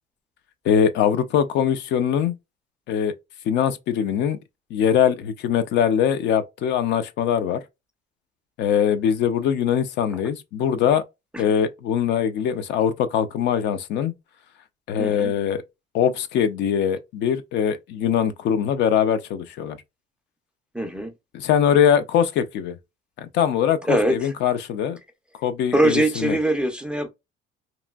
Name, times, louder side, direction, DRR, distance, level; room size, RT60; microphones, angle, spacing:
voice 1, 0.6-2.3 2.9-3.1 3.5-4.4 4.7-7.6 8.6-11.0 11.4-14.1 14.9-15.6 15.9-19.8 21.3-22.8 23.2-25.0 25.4-26.4, left 8 dB, 65° left, 0.5 m, -22 dB
voice 2, 15.0-15.3 20.7-21.1 23.8-24.3 25.7-27.1, right 1 dB, 5° right, 0.3 m, -22 dB
2.9 x 2.5 x 2.2 m
cardioid pair, 170°, 20 cm